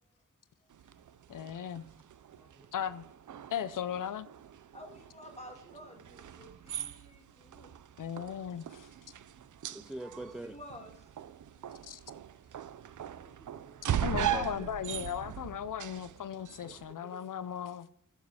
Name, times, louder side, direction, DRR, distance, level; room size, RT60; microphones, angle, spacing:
sound 1, 0.7-16.9, right 10 dB, 70° right, 0.5 m, -40 dB
voice 1, 1.3-1.9 2.7-3.0 3.5-4.3 8.0-8.9 11.8-12.0 14.0-17.9, left 9 dB, 80° left, 0.5 m, -37 dB
voice 2, 4.7-7.7 10.2-11.1, left 1 dB, 20° left, 2.2 m, -51 dB
voice 3, 9.7-10.6 13.2-13.8 14.1-14.6 16.6-16.8 17.1-17.2, right 1 dB, ahead, 0.4 m, -45 dB
11.0 x 7.3 x 4.7 m
wide cardioid pair, 125°, 31 cm